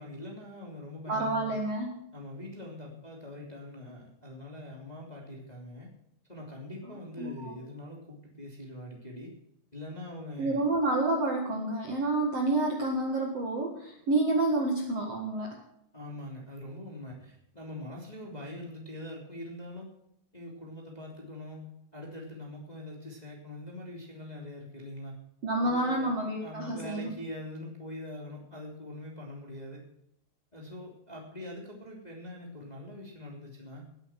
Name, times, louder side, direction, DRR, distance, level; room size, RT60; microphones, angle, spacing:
voice 1, 0.0-1.6 2.1-5.9 6.3-9.3 9.7-10.6 15.9-19.9 20.3-21.7 21.9-25.1 25.6-26.1 26.4-29.8 30.5-33.9, left 1 dB, 10° left, -1 dB, 2.5 m, -43 dB
voice 2, 1.1-2.0 7.2-7.6 10.4-15.6 25.4-27.1, right 2 dB, 50° right, 0 dB, 2.2 m, -29 dB
18.5 x 8.8 x 5.9 m, 0.77 s
omnidirectional pair, 5.0 m